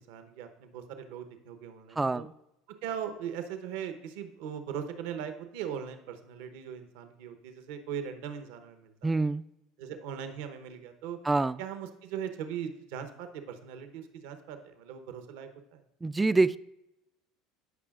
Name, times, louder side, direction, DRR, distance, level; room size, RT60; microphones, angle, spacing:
voice 1, 0.0-2.3 2.8-9.2 9.8-11.2 11.6-15.8, right 8 dB, 75° right, 8 dB, 0.9 m, -39 dB
voice 2, 2.0-2.3 9.0-9.4 11.2-11.6 16.0-16.6, right 3 dB, 15° right, 16 dB, 0.3 m, -26 dB
15.5 x 5.6 x 2.4 m, 0.86 s
supercardioid pair, 90°, 0 cm